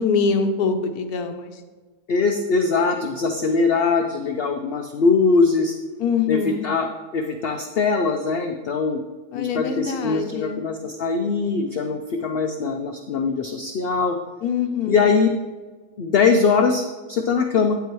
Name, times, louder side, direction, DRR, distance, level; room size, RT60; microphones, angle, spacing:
voice 1, 0.0-1.5 6.0-6.6 9.3-10.6 14.4-15.1, left 5 dB, 85° left, 4 dB, 1.2 m, -24 dB
voice 2, 2.1-5.7 6.3-9.0 9.3-14.2 14.9-15.3 16.0-17.8, left 4 dB, 60° left, 4 dB, 0.6 m, -21 dB
9.3 x 8.1 x 3.1 m, 1.3 s
omnidirectional pair, 1.6 m